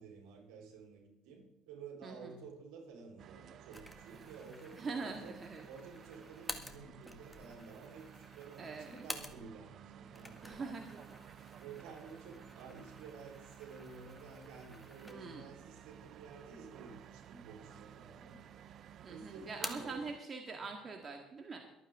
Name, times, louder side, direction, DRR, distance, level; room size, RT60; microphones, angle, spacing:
voice 1, 0.0-5.4 5.6-10.7 11.6-18.4 19.0-20.1 20.5-20.7, right 5 dB, 75° right, 0 dB, 4.3 m, -52 dB
voice 2, 2.0-2.4 4.7-5.7 8.6-9.1 10.4-11.2 15.0-15.4 19.0-21.6, right 4 dB, 35° right, 3 dB, 1.9 m, -44 dB
sound 1, 3.2-20.2, right 9 dB, 55° right, 0.7 m, -55 dB
sound 2, 3.7-9.7 10.0-15.5 15.9-16.0 16.9-17.5 17.8-18.6 18.9-20.0, left 1 dB, 5° left, 1.9 m, -50 dB
23.0 x 9.1 x 3.8 m, 0.90 s
supercardioid pair, 70°, 0 cm